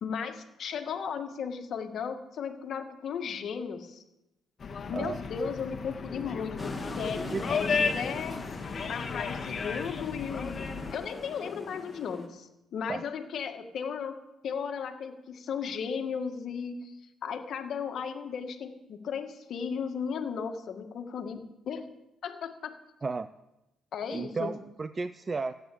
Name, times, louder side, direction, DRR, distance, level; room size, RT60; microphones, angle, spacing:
voice 1, 0.0-4.0 4.9-8.4 8.9-14.2 14.4-17.0 17.2-21.9 22.2-22.8 23.9-24.5, left 6 dB, 65° left, 6 dB, 1.8 m, -35 dB
sound 1, 4.6-11.0, left 5 dB, 45° left, 1.8 m, -34 dB
sound 2, 6.6-12.3, left 2 dB, 10° left, 2.5 m, -41 dB
voice 2, 24.1-25.5, right 4 dB, 30° right, 13 dB, 0.5 m, -33 dB
15.0 x 9.1 x 8.6 m, 0.94 s
cardioid pair, 90°, 0 cm